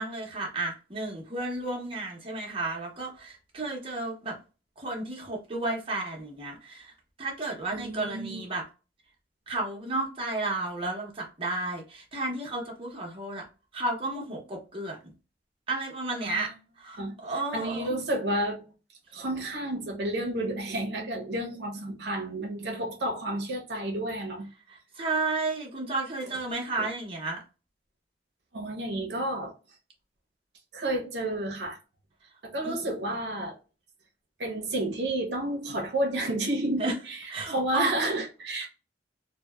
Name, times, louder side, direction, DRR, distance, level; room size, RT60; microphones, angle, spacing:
voice 1, 0.0-4.4 4.8-8.6 9.5-13.4 13.7-15.1 15.7-16.5 16.8-18.0 24.7-27.4 32.6-32.9 36.8-36.9 37.3-38.0, right 2 dB, 30° right, 0.7 m, -32 dB
voice 2, 7.7-8.4 16.2-16.5 17.0-17.2 17.5-18.6 19.1-24.5 26.8-26.9 28.5-29.5 30.7-31.8 32.4-33.6 34.4-38.7, right 1 dB, 70° right, 0.6 m, -31 dB
2.8 x 2.0 x 2.2 m
head